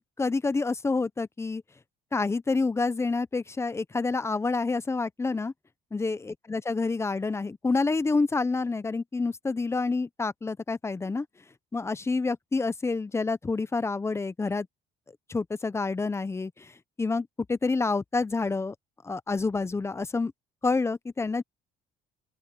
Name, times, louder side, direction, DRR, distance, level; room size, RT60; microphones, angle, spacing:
voice 1, 0.2-1.6 2.1-5.5 5.9-11.3 11.7-14.7 15.3-16.7 17.0-18.7 19.0-20.3 20.6-21.4, left 3 dB, 15° left, 0.7 m, -28 dB
open air
cardioid pair, 110°, 17 cm